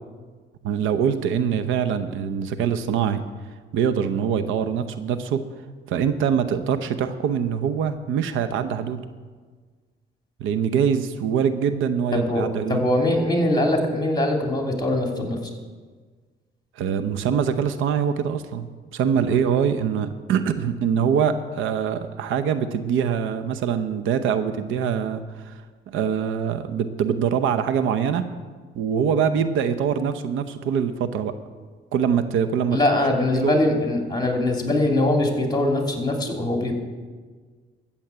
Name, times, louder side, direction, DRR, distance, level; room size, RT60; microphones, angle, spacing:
voice 1, 0.6-3.2 3.7-5.5 5.9-9.0 10.4-12.8 16.8-25.6 25.9-28.2 28.7-31.3 31.9-32.8 33.3-33.6, right 7 dB, 85° right, 11 dB, 0.8 m, -24 dB
voice 2, 12.1-15.4 32.7-36.7, left 1 dB, 20° left, 1 dB, 2.8 m, -22 dB
13.5 x 7.1 x 8.0 m, 1.5 s
cardioid pair, 90°, 20 cm